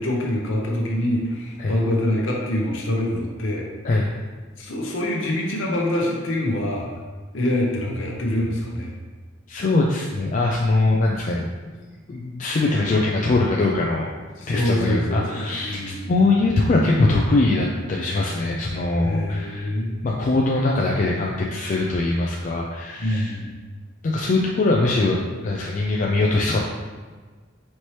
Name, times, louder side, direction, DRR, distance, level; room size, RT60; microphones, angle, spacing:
voice 1, 0.0-3.7 4.6-6.9 7.3-8.9 14.4-16.1 19.0-19.9 23.0-23.5, left 1 dB, 70° left, -1 dB, 0.8 m, -25 dB
voice 2, 9.5-11.5 12.1-14.1 14.5-15.8 16.1-19.7 20.0-23.3 24.0-25.2 25.4-26.6, left 2 dB, 40° left, -2 dB, 0.3 m, -22 dB
4.4 x 2.9 x 3.2 m, 1.4 s
head